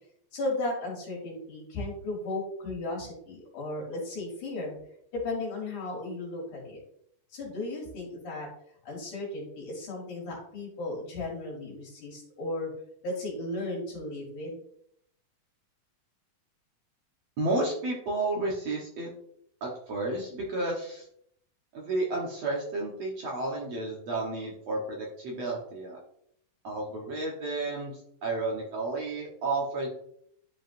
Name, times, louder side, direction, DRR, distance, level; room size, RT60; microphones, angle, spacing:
voice 1, 0.3-4.8 5.1-6.8 7.3-8.5 8.8-12.7 13.0-14.6, left 2 dB, 60° left, -3 dB, 3.6 m, -35 dB
voice 2, 17.4-19.1 19.6-21.0 21.7-26.0 26.6-29.9, right 2 dB, 60° right, -3 dB, 1.9 m, -32 dB
11.0 x 4.9 x 2.6 m, 0.69 s
omnidirectional pair, 4.1 m